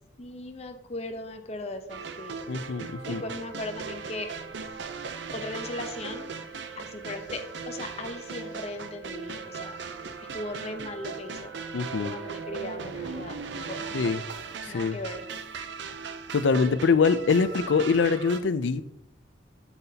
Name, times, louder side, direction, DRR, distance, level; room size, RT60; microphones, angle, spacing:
voice 1, 0.2-2.4 3.1-4.3 5.3-6.3 6.8-9.8 10.2-13.4 13.7-14.1 14.7-15.2, left 2 dB, 35° left, 7 dB, 0.7 m, -38 dB
sound 1, 1.9-18.4, right 5 dB, 65° right, 0.6 m, -38 dB
Organ, 2.3-13.4, right 7 dB, 40° right, 2.6 m, -48 dB
voice 2, 2.5-3.2 11.7-12.1 13.9-14.2 14.6-15.0 16.3-18.8, left 5 dB, 75° left, 14 dB, 0.5 m, -24 dB
7.8 x 7.3 x 2.8 m, 0.79 s
head